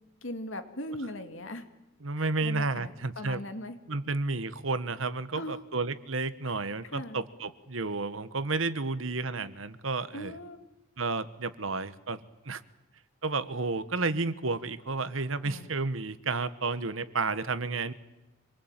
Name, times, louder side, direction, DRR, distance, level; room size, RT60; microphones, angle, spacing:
voice 1, 0.2-1.6 2.2-3.8 5.3-5.6 6.4-6.5 6.9-7.2 10.1-10.6 15.4-15.7, left 1 dB, 70° left, 8 dB, 2.4 m, -39 dB
voice 2, 2.0-3.4 3.9-10.3 11.0-12.2 12.4-12.6 13.2-17.9, right 3 dB, 80° right, 14 dB, 1.3 m, -31 dB
26.5 x 20.5 x 9.0 m, 0.99 s
head